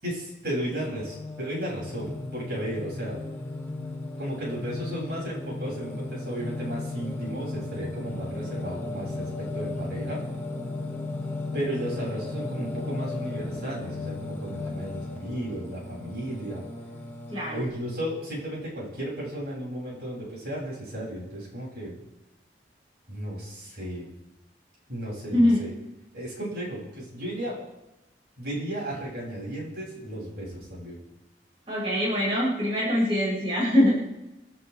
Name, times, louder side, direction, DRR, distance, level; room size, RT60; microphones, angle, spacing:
voice 1, 0.0-3.2 4.2-10.2 11.5-16.6 17.5-22.0 23.1-24.1 24.9-25.7 26.1-27.5 28.4-31.0, right 1 dB, 60° right, -4 dB, 7.6 m, -34 dB
Singing, 0.6-17.7, left 2 dB, 10° left, 2.0 m, -35 dB
voice 2, 17.3-17.6 25.3-25.6 31.7-33.9, left 1 dB, 30° right, -7 dB, 6.4 m, -23 dB
29.0 x 11.0 x 3.6 m, 0.97 s
head